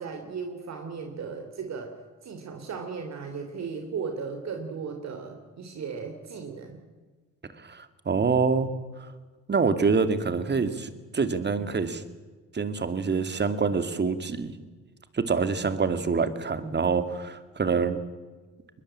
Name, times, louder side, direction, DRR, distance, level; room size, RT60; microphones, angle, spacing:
voice 1, 0.0-1.9 2.2-6.8, right 5 dB, 60° right, 5 dB, 3.1 m, -36 dB
voice 2, 7.6-8.7 9.5-12.0 12.5-14.5 15.1-18.0, right 5 dB, 35° right, 11 dB, 2.5 m, -26 dB
22.0 x 21.0 x 8.8 m, 1.3 s
cardioid pair, 90°, 30 cm